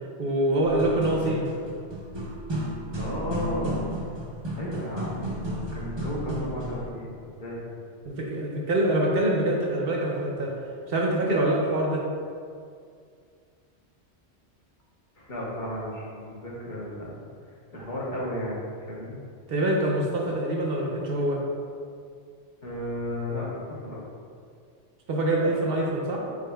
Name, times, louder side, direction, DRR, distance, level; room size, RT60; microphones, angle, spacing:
voice 1, 0.2-1.5 8.0-10.5 10.9-12.0 19.5-21.4 25.1-26.2, right 1 dB, 65° right, -2 dB, 0.8 m, -25 dB
sound 1, 0.7-6.9, right 1 dB, 30° right, 0.5 m, -33 dB
voice 2, 3.0-3.9 4.6-7.6 15.2-17.1 17.4-18.6 18.9-19.2 22.6-24.0, left 1 dB, 50° left, -6 dB, 1.0 m, -33 dB
4.9 x 4.6 x 2.3 m, 2.2 s
omnidirectional pair, 1.1 m